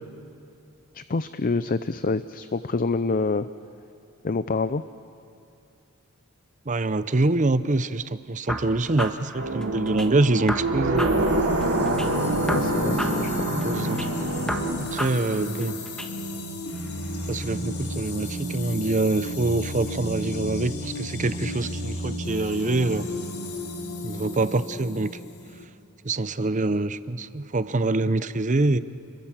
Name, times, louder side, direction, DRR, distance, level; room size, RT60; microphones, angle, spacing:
voice 1, 0.9-3.5 4.2-4.8 12.5-13.6, left 3 dB, 40° left, 13 dB, 0.5 m, -27 dB
voice 2, 6.7-11.0 13.6-14.0 14.3-14.5 14.8-15.7 17.3-23.1 24.0-25.1 26.0-28.8, right 2 dB, 35° right, 13 dB, 0.7 m, -25 dB
sound 1, 8.5-10.1 10.5-12.1 12.5-14.1 14.5-16.1, equal, 5° left, 1.4 m, -33 dB
sound 2, 9.4-14.7, right 2 dB, 65° right, 2.9 m, -26 dB
sound 3, 11.0-25.7, left 1 dB, 85° left, 3.3 m, -33 dB
29.0 x 22.0 x 7.5 m, 2.6 s
head